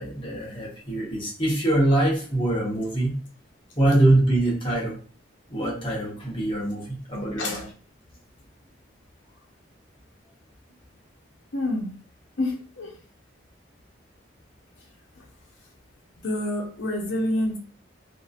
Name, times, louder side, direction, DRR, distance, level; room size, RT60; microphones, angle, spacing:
voice 1, 0.0-3.2 3.8-5.0 5.5-7.7, right 1 dB, 30° left, -4 dB, 1.0 m, -23 dB
voice 2, 11.5-11.9 12.4-12.9 16.2-17.6, left 1 dB, 85° left, 1 dB, 0.8 m, -27 dB
2.8 x 2.6 x 2.5 m, 0.41 s
head